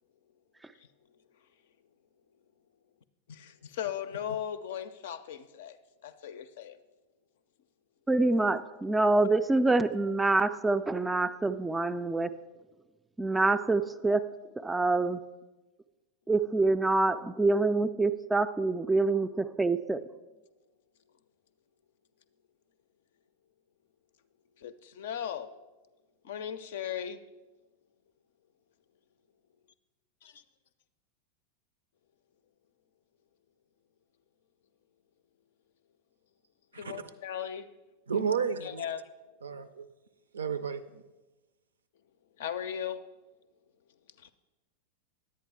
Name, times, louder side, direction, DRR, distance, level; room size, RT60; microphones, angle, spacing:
voice 1, 3.3-5.8 6.0-6.8 24.6-25.5 26.2-27.2 30.2-30.3 36.7-37.7 38.6-39.0 42.4-43.0 44.2-44.3, left 9 dB, 55° left, 0.5 m, -37 dB
voice 2, 8.1-12.3 13.2-15.2 16.3-20.1, right 2 dB, 10° right, 0.3 m, -26 dB
voice 3, 38.1-38.8 39.4-39.9 40.3-41.0, right 6 dB, 70° right, 0.4 m, -32 dB
10.5 x 8.5 x 3.6 m
figure-of-eight pair, 90°, 0 cm